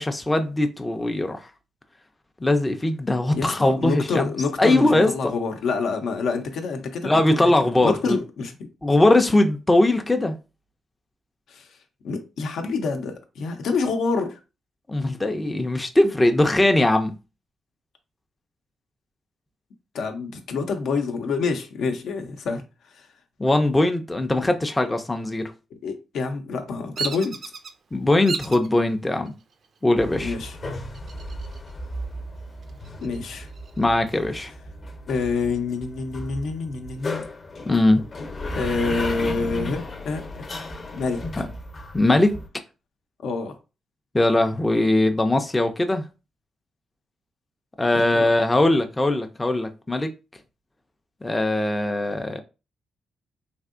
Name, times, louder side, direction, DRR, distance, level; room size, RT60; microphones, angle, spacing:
voice 1, 0.0-1.5 2.4-4.3 4.6-5.3 7.0-8.2 8.8-10.4 14.9-17.1 23.4-25.5 27.9-29.3 29.8-30.4 33.8-34.5 37.7-38.0 41.4-41.5 41.9-42.4 44.1-46.0 47.8-50.1 51.2-52.4, left 1 dB, 15° left, 0.4 m, -20 dB
voice 2, 3.3-7.5 7.8-8.5 11.5-11.7 12.0-14.4 19.9-23.1 25.8-27.4 30.2-30.6 33.0-33.5 35.1-37.2 38.5-40.5 40.9-41.4 43.2-43.5 47.9-48.3, left 4 dB, 80° left, 0.6 m, -27 dB
Bird vocalization bird call bird song, 27.0-27.7 28.3-28.7 29.3-29.8 30.9-31.7 32.1-32.2 32.6-34.0, right 5 dB, 55° right, 0.4 m, -34 dB
sound 1, 30.0-42.5, left 1 dB, 40° left, 0.8 m, -35 dB
3.4 x 2.7 x 2.5 m
cardioid pair, 90°, 0 cm